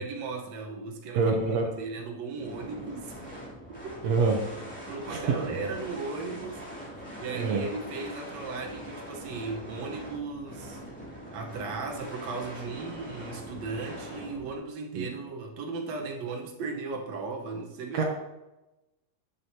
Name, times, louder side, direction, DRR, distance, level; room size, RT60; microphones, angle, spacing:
voice 1, 0.0-1.4 1.8-3.2 3.7-4.2 4.9-10.8 11.3-18.0, right 4 dB, 65° right, 1 dB, 1.9 m, -37 dB
voice 2, 1.1-1.7 4.0-4.4 5.1-5.2 7.3-7.6 14.9-15.1 17.9-18.0, right 4 dB, 90° right, 1 dB, 1.4 m, -25 dB
sound 1, 2.4-14.6, equal, 5° left, 2.3 m, -42 dB
11.5 x 7.6 x 2.8 m, 0.99 s
omnidirectional pair, 4.2 m